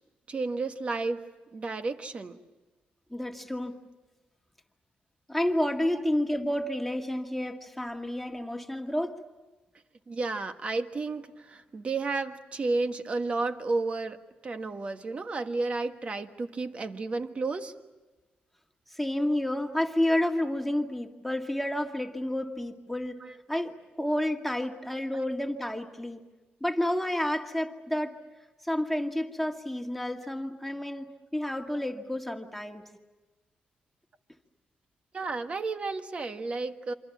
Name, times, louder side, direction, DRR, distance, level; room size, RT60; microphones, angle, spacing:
voice 1, 0.3-1.2 1.5-2.4 10.1-17.7 23.2-23.4 25.1-25.2 35.1-36.9, right 3 dB, 40° right, 8 dB, 1.5 m, -32 dB
voice 2, 3.1-3.8 5.3-9.2 18.9-23.2 23.5-26.2 26.6-28.1 28.6-32.8, left 1 dB, 5° left, 3 dB, 2.0 m, -30 dB
28.0 x 25.5 x 7.3 m, 1.2 s
cardioid pair, 105°, 3 cm